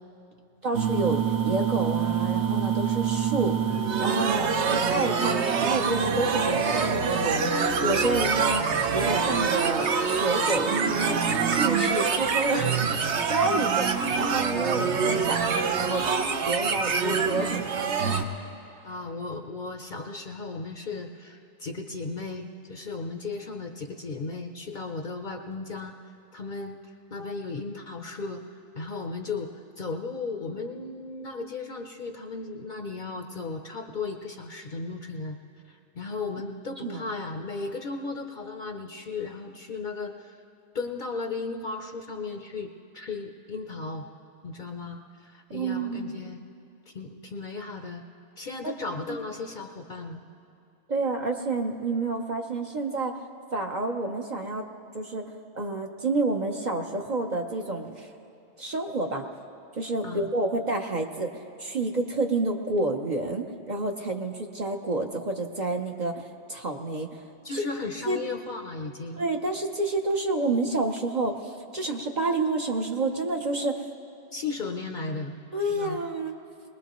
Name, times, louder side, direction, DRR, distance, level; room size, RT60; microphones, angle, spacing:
voice 1, 0.6-3.6 4.0-11.2 11.5-16.0 16.4-17.9 36.8-37.0 45.5-46.3 48.6-48.7 50.9-53.2 53.5-54.7 54.9-55.2 55.6-58.1 58.6-59.2 59.8-66.1 66.5-67.2 67.5-67.6 68.1-68.2 69.2-73.7 75.5-76.3, right 2 dB, 40° right, 2 dB, 0.8 m, -29 dB
sound 1, 0.7-18.2, right 6 dB, 70° right, 1.0 m, -25 dB
voice 2, 18.8-26.0 26.3-28.4 28.7-35.4 35.7-40.4 40.7-44.1 44.4-46.4 46.9-48.0 48.4-50.2 60.0-60.3 67.4-69.2 74.3-75.4 75.7-76.0, left 3 dB, 50° left, 4 dB, 0.7 m, -35 dB
21.5 x 20.0 x 3.0 m, 2.6 s
omnidirectional pair, 1.2 m